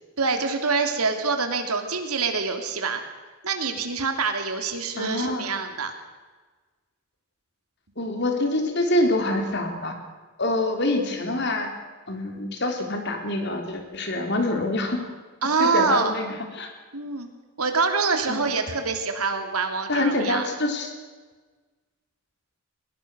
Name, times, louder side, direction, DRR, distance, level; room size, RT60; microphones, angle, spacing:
voice 1, 0.2-3.0 3.4-5.9 15.4-16.1 16.9-17.3 17.6-20.4, right 4 dB, 85° right, 6 dB, 3.2 m, -25 dB
voice 2, 5.0-5.5 8.0-10.0 10.4-11.7 12.1-15.1 15.6-16.7 18.3-18.4 19.9-20.9, left 2 dB, 50° left, 4 dB, 3.9 m, -26 dB
22.5 x 20.5 x 6.5 m, 1.3 s
head